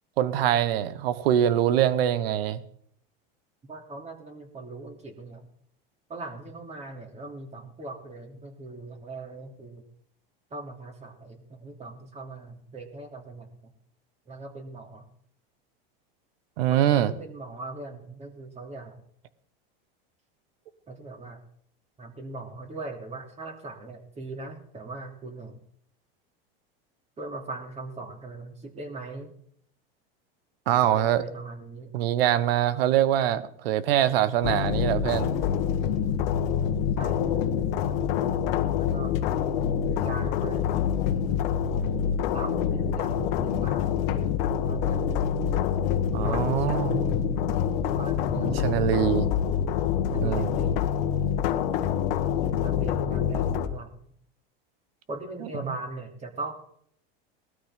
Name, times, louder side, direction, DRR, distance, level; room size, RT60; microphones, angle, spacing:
voice 1, 0.2-2.6 16.6-17.1 30.7-31.2 31.9-35.3 46.1-47.0 48.4-49.3 50.2-50.5, right 11 dB, 75° right, 15 dB, 1.3 m, -24 dB
voice 2, 3.6-5.5 6.1-9.9 10.5-13.7 14.3-15.1 16.7-19.0 20.9-21.4 22.0-25.6 27.2-29.3 30.7-32.0 36.9-39.1 39.8-40.7 41.6-42.0 42.3-44.0 44.6-45.1 46.1-47.4 47.8-49.2 50.0-51.0 52.4-53.9 55.1-56.5, right 2 dB, 20° right, 3 dB, 3.0 m, -40 dB
sound 1, 34.4-53.7, left 8 dB, 75° left, 1.5 m, -26 dB
19.0 x 13.0 x 3.8 m, 0.65 s
supercardioid pair, 125°, 29 cm